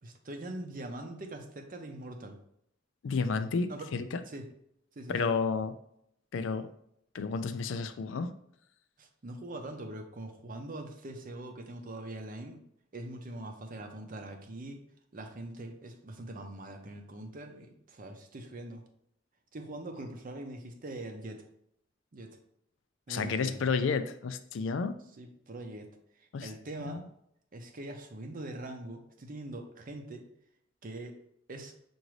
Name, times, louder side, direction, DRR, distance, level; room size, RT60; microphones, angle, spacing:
voice 1, 0.0-2.4 3.7-3.9 4.3-4.5 5.0-5.3 9.0-12.6 12.9-14.8 15.1-18.8 19.5-21.4 22.1-22.4 23.1-23.6 25.2-25.9 26.2-27.0 27.5-30.2 30.8-31.1 31.5-31.7, right 1 dB, 45° right, 4 dB, 0.6 m, -42 dB
voice 2, 3.0-4.2 5.1-5.7 6.3-6.7 7.1-8.3 23.1-25.0 26.3-26.5 26.9-27.0, left 5 dB, 65° left, 10 dB, 0.4 m, -31 dB
5.9 x 2.6 x 3.2 m, 0.72 s
head